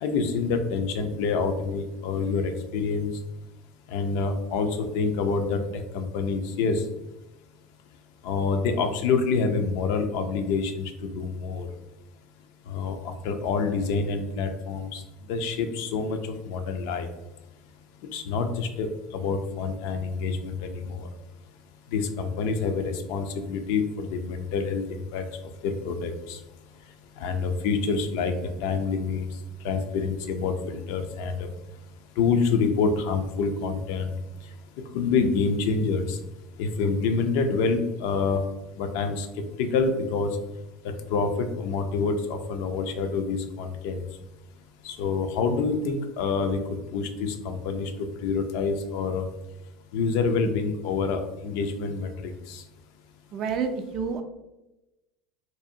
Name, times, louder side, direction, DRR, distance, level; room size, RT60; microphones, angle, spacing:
voice 1, 0.0-3.1 3.9-4.7 4.9-5.6 5.9-6.8 8.2-11.7 12.7-13.0 13.2-15.0 15.3-16.2 16.5-17.1 18.1-21.0 21.9-25.2 25.6-26.4 27.2-29.3 29.6-31.3 32.2-34.1 34.9-36.2 36.6-38.4 38.8-39.3 39.6-40.3 41.1-41.3 41.6-44.0 44.8-46.6 46.9-47.9 48.2-49.2 49.9-52.6, left 4 dB, 75° left, 6 dB, 0.3 m, -27 dB
voice 2, 53.3-54.2, right 6 dB, 50° right, 7 dB, 0.3 m, -29 dB
2.6 x 2.0 x 2.6 m, 0.98 s
supercardioid pair, 110°, 0 cm